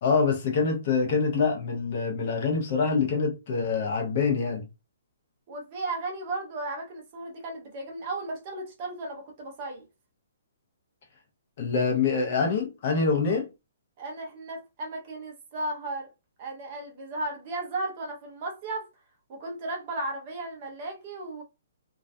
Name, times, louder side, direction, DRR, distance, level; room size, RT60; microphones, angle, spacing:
voice 1, 0.0-4.6 11.6-13.5, left 5 dB, 35° left, 0.6 m, -25 dB
voice 2, 5.5-9.8 14.0-16.1 16.4-18.9 19.3-21.4, right 2 dB, 25° right, 0.5 m, -35 dB
2.3 x 2.1 x 2.5 m
hypercardioid pair, 175°, 0 cm